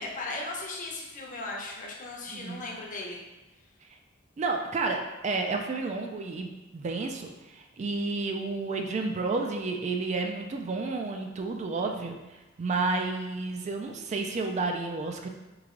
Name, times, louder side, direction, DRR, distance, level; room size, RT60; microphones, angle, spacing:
voice 1, 0.0-3.2, left 2 dB, 40° left, -1 dB, 0.7 m, -37 dB
voice 2, 2.3-2.6 4.4-12.2 12.6-15.3, right 3 dB, 35° right, 4 dB, 0.3 m, -31 dB
3.4 x 3.2 x 3.7 m, 1.1 s
head